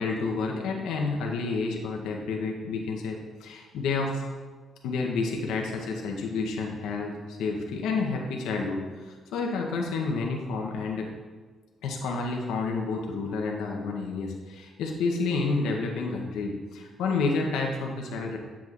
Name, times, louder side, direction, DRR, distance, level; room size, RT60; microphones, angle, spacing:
voice 1, 0.0-4.2 4.8-11.1 11.8-18.4, left 4 dB, 85° left, 0 dB, 0.7 m, -30 dB
7.9 x 7.2 x 2.4 m, 1.4 s
cardioid pair, 90°, 0 cm